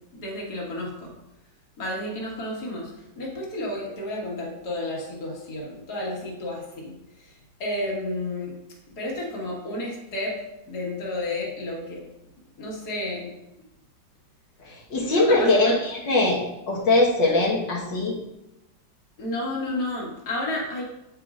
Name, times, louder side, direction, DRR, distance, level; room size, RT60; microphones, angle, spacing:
voice 1, 0.2-1.1 1.8-8.5 9.0-10.4 10.7-12.1 12.6-13.3 15.1-15.8 19.2-20.8, left 1 dB, 60° left, -3 dB, 2.3 m, -31 dB
voice 2, 14.6-16.4 16.7-18.2, left 2 dB, 80° left, -5 dB, 2.1 m, -21 dB
8.9 x 8.4 x 2.5 m, 0.90 s
omnidirectional pair, 2.0 m